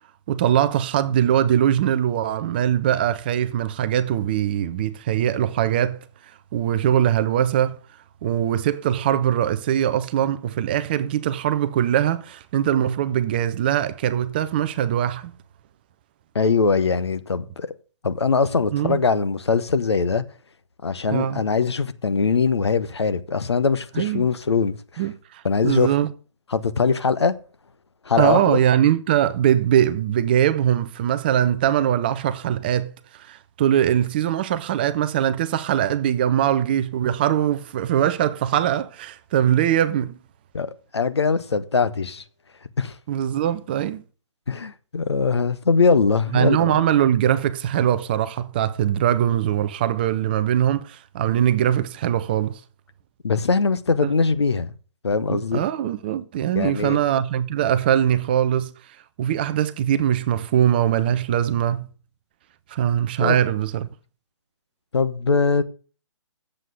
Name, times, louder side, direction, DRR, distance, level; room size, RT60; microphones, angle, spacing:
voice 1, 0.3-6.0 6.3-7.8 8.2-15.3 18.7-19.0 21.1-21.4 23.9-24.3 25.0-26.1 28.2-40.2 43.1-44.0 46.3-52.6 54.0-54.1 55.3-58.7 59.2-61.9 62.7-63.9, right 10 dB, 20° right, 0.5 m, -21 dB
voice 2, 16.3-17.7 18.0-20.2 20.8-24.8 25.4-25.9 26.5-27.3 28.1-28.6 40.5-42.2 42.8-42.9 44.5-46.8 53.2-54.7 55.0-55.6 56.6-57.0 63.2-63.4 64.9-65.6, left 4 dB, 60° left, 1.1 m, -21 dB
9.2 x 7.7 x 6.4 m
figure-of-eight pair, 135°, 16 cm